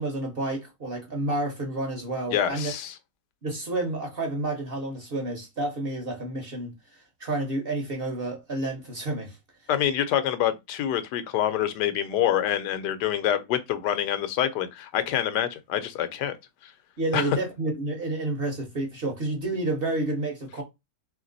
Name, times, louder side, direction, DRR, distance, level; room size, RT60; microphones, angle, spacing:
voice 1, 0.0-2.7 3.4-9.4 17.0-20.6, right 2 dB, 45° right, 0.9 m, -30 dB
voice 2, 2.3-2.9 9.7-16.4 17.1-17.3, left 10 dB, 85° left, 1.2 m, -26 dB
3.5 x 2.9 x 3.9 m
omnidirectional pair, 1.8 m